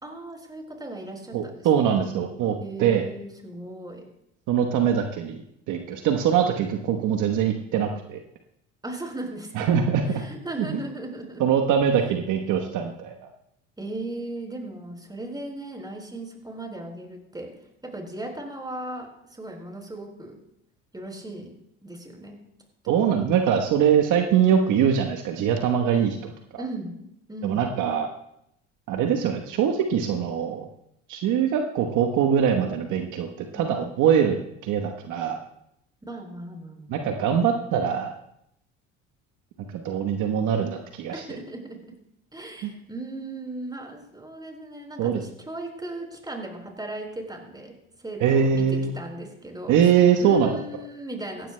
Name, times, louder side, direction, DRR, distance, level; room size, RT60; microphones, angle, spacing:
voice 1, 0.0-2.1 2.6-4.0 8.8-9.7 10.1-11.5 12.0-12.1 13.8-17.5 17.8-20.4 20.9-21.5 21.8-22.4 22.8-23.0 26.6-26.9 27.3-27.6 33.5-33.9 36.1-37.0 41.1-41.8 42.3-47.7 48.0-51.5, right 1 dB, 10° right, 1 dB, 4.6 m, -37 dB
voice 2, 1.3-3.0 4.5-5.4 5.7-8.2 9.5-10.2 10.6-10.8 11.4-13.3 22.9-26.6 27.4-28.1 28.9-30.7 31.1-35.4 36.9-38.1 39.7-41.2 42.6-42.7 45.0-45.2 48.2-48.9 49.7-50.5, right 8 dB, 60° right, 4 dB, 1.2 m, -23 dB
18.0 x 15.5 x 2.2 m, 0.77 s
hypercardioid pair, 65°, 35 cm